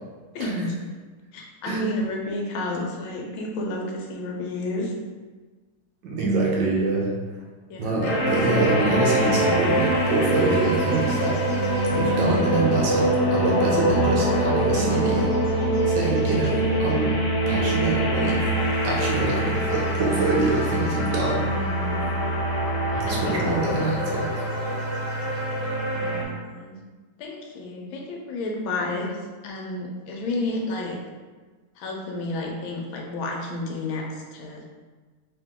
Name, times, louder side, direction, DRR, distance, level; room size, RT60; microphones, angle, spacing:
voice 1, 0.3-0.7 1.3-4.9 7.7-8.2 12.1-12.6 16.1-17.1 21.4-22.3 22.9-23.5 25.9-26.8 27.2-29.1 29.4-31.0 31.8-34.0 34.3-34.6, left 2 dB, 75° left, 0 dB, 1.4 m, -31 dB
voice 2, 6.0-7.2 7.8-11.6 11.9-15.5 15.9-17.2 17.5-18.5 18.8-21.5 23.0-24.3, right 3 dB, 70° right, -3 dB, 1.2 m, -25 dB
sound 1, 8.0-26.2, right 1 dB, 60° left, 1.4 m, -24 dB
3.4 x 2.9 x 3.6 m, 1.4 s
omnidirectional pair, 2.3 m